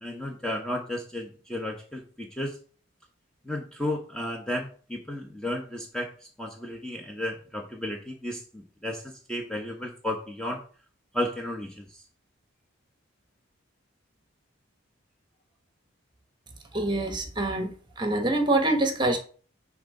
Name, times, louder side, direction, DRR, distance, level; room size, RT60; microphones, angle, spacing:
voice 1, 0.0-2.6 3.4-10.6 11.1-12.0, left 1 dB, 5° left, 0 dB, 0.9 m, -33 dB
voice 2, 16.7-19.2, right 2 dB, 20° right, 5 dB, 1.2 m, -25 dB
10.0 x 3.6 x 5.4 m, 0.41 s
head